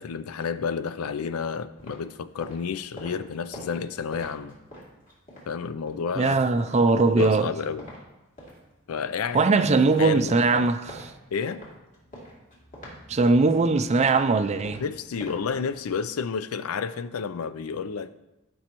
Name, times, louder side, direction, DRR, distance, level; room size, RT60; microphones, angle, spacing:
voice 1, 0.0-4.6 5.5-6.4 7.1-7.9 8.9-9.5 10.0-10.7 11.3-11.6 14.7-18.2, left 6 dB, 90° left, 0.4 m, -31 dB
sound 1, 1.8-6.2 6.5-8.0 8.3-16.0, equal, 40° left, 2.5 m, -46 dB
voice 2, 6.2-7.5 9.3-11.0 13.1-14.8, right 3 dB, 30° right, 0.4 m, -20 dB
14.5 x 5.4 x 3.0 m
head